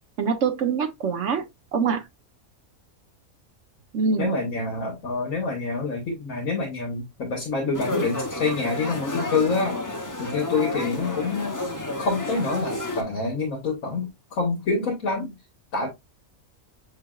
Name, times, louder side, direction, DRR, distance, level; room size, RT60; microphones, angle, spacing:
voice 1, 0.2-1.4 1.7-2.0 3.9-4.4, right 5 dB, 65° right, 1.1 m, -24 dB
voice 2, 4.2-9.8 10.2-11.5 12.0-15.3 15.7-15.9, left 3 dB, 70° left, 1.5 m, -27 dB
sound 1, 7.7-13.0, left 2 dB, 20° left, 0.5 m, -31 dB
6.7 x 3.3 x 2.3 m
omnidirectional pair, 1.5 m